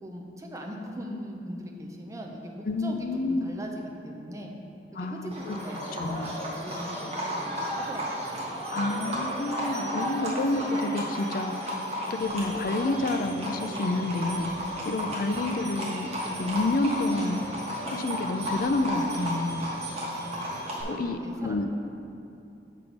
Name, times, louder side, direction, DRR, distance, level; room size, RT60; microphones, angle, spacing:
voice 1, 0.0-4.5 4.9-8.9 15.0-15.3 20.2-20.5 20.8-21.6, equal, 20° right, 0 dB, 0.6 m, -40 dB
voice 2, 2.6-3.5 5.0-5.6 5.9-6.4 8.7-14.5 14.8-17.4 17.9-19.7 20.9-21.7, left 2 dB, 55° left, 7 dB, 0.4 m, -29 dB
Livestock farm animals working animals, 5.3-20.8, equal, 35° right, 1.3 m, -33 dB
sound 1, 12.2-20.5, equal, ahead, 1.6 m, -49 dB
6.8 x 4.6 x 5.1 m, 2.7 s
head